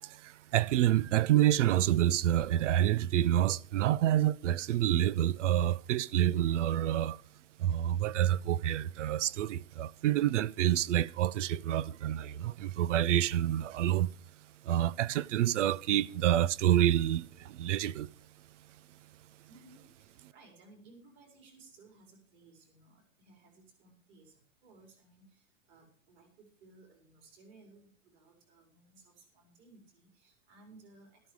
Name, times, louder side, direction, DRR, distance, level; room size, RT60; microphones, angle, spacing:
voice 1, 0.0-7.2 7.6-14.1 14.6-18.1, right 12 dB, 65° right, 0.7 m, -28 dB
voice 2, 19.5-24.3 24.6-31.2, right 3 dB, 30° right, 5.3 m, -59 dB
13.5 x 13.5 x 4.9 m
supercardioid pair, 170°, 40 cm